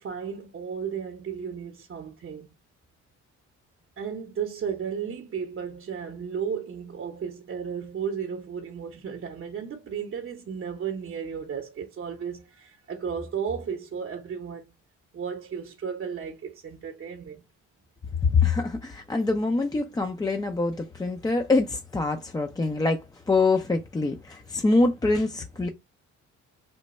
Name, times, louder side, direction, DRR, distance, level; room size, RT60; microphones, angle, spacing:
voice 1, 0.0-2.5 4.0-14.7 15.1-17.4, right 7 dB, 40° right, 0.7 m, -34 dB
voice 2, 18.2-25.7, left 3 dB, 15° left, 0.4 m, -25 dB
3.1 x 2.2 x 4.1 m
cardioid pair, 90°, 30 cm